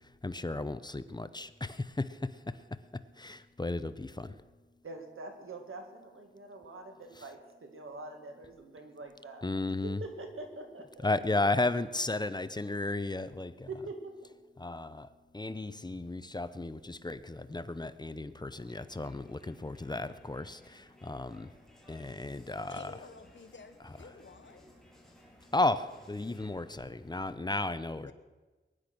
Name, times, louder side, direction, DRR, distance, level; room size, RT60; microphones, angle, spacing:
voice 1, 0.2-2.3 3.2-4.3 9.4-10.0 11.0-13.7 14.6-15.1 15.3-21.5 21.9-22.9 25.5-28.1, left 2 dB, 20° left, 13 dB, 0.8 m, -34 dB
voice 2, 4.8-9.5 9.8-11.1 13.7-14.1, right 2 dB, 90° right, 4 dB, 2.3 m, -44 dB
Crowd, 18.6-27.4, equal, ahead, 3.9 m, -60 dB
voice 3, 22.7-24.7 27.9-28.1, left 5 dB, 65° left, 9 dB, 1.4 m, -51 dB
21.5 x 10.5 x 6.2 m, 1.3 s
wide cardioid pair, 80°, 21 cm